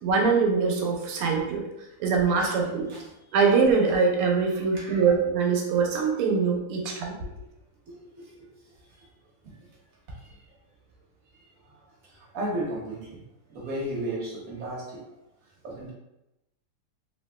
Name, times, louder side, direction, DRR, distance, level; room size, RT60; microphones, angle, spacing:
voice 1, 0.0-1.6 2.0-2.9 3.3-7.2, right 5 dB, 90° right, 1 dB, 1.5 m, -23 dB
voice 2, 4.7-5.0 7.9-8.3 10.2-10.4 12.1-13.2 13.5-15.0 15.6-15.9, right 1 dB, 60° right, -4 dB, 0.9 m, -34 dB
3.4 x 2.7 x 2.2 m, 0.90 s
omnidirectional pair, 2.4 m